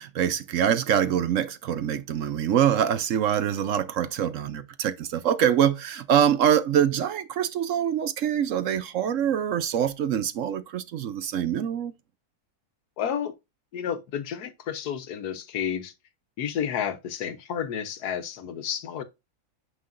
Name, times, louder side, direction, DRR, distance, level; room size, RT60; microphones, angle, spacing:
voice 1, 0.0-11.9, right 9 dB, 65° right, 0.9 m, -24 dB
voice 2, 13.0-13.3 13.7-15.9 16.4-19.0, left 8 dB, 80° left, 1.4 m, -31 dB
9.4 x 5.7 x 2.5 m
omnidirectional pair, 1.6 m